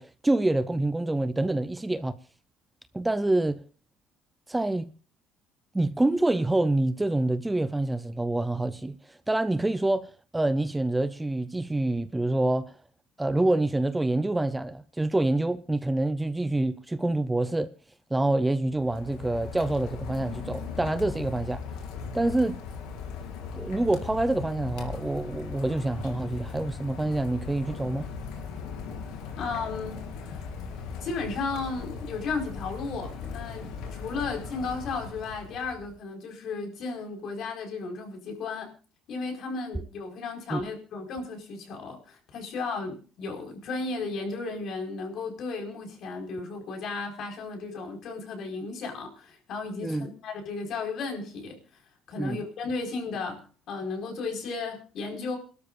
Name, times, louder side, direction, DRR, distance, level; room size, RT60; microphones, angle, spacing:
voice 1, 0.0-2.1 2.9-3.6 4.5-4.9 5.7-12.7 13.2-17.7 18.1-21.6 22.1-22.6 23.5-28.1 40.5-40.6 49.8-50.1 52.2-52.4, right 2 dB, 10° right, 0.6 m, -26 dB
Rain, 18.7-36.0, left 5 dB, 80° left, 3.3 m, -38 dB
voice 2, 29.4-30.4 31.0-38.7 39.1-51.6 52.1-55.4, left 4 dB, 55° left, 4.9 m, -34 dB
28.0 x 12.5 x 2.5 m
cardioid pair, 125°, 0 cm